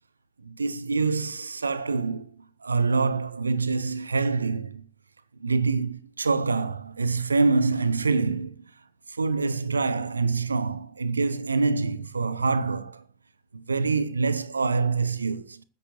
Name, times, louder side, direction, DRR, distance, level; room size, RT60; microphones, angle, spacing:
voice 1, 0.4-2.3 2.6-4.8 5.4-8.5 9.1-13.0 13.5-15.6, right 4 dB, 75° right, 0.8 m, -25 dB
21.0 x 10.5 x 2.7 m
figure-of-eight pair, 90°, 0 cm